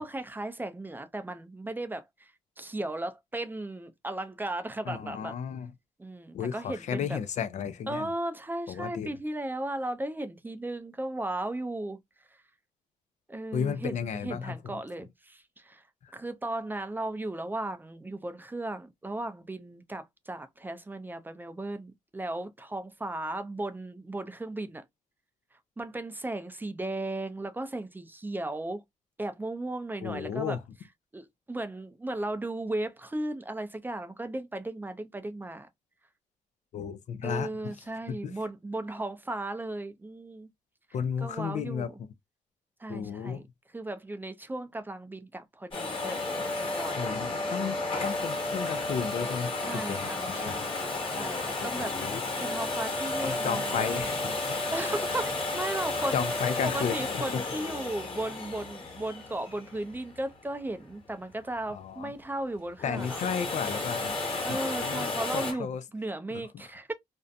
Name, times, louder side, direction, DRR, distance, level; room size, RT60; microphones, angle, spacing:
voice 1, 0.0-5.4 6.0-7.2 7.9-12.0 12.3-12.4 13.3-15.8 16.1-24.8 25.8-28.8 29.2-30.6 31.1-35.7 37.2-40.5 41.2-42.0 42.8-43.4 43.7-47.0 49.6-54.1 54.6-56.2 56.6-63.2 64.4-66.9, right 2 dB, 15° right, 0.4 m, -36 dB
voice 2, 4.9-5.7 6.3-8.1 8.7-9.1 13.5-14.6 16.0-16.1 30.0-30.6 36.7-37.5 38.1-38.3 40.9-41.9 42.9-43.4 47.0-50.6 51.6-52.2 53.2-54.7 56.1-57.0 57.3-57.4 61.7-62.1 62.8-64.2 64.5-65.8, left 7 dB, 60° left, 0.4 m, -33 dB
Domestic sounds home sounds, 45.7-60.5 62.8-65.5, left 2 dB, 40° left, 1.2 m, -32 dB
2.5 x 2.1 x 2.4 m
cardioid pair, 90°, 14 cm